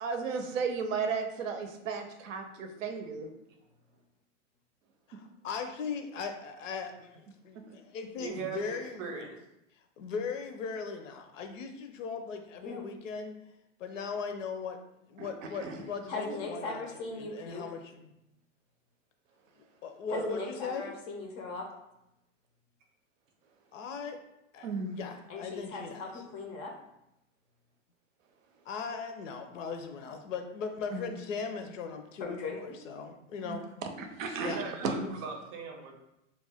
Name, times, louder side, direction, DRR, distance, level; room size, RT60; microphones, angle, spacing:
voice 1, 0.0-2.4 2.8-3.3 15.2-15.3 15.6-15.8 20.1-20.4 24.6-25.0 30.9-31.1 33.4-33.6 34.0-34.9, right 5 dB, 85° right, 6 dB, 0.6 m, -34 dB
voice 2, 5.1-9.1 10.0-13.3 13.8-14.8 15.1-18.1 19.6-20.9 23.7-24.2 24.5-26.0 28.7-33.6 34.4-35.1, left 5 dB, 75° left, 6 dB, 0.6 m, -39 dB
voice 3, 8.1-9.4 34.4-35.9, right 5 dB, 35° right, 1 dB, 0.6 m, -40 dB
voice 4, 16.1-17.6 20.1-21.7 25.3-26.7 32.2-32.8, left 3 dB, 30° left, 1 dB, 0.4 m, -38 dB
2.5 x 2.2 x 3.4 m, 0.85 s
hypercardioid pair, 120°, 38 cm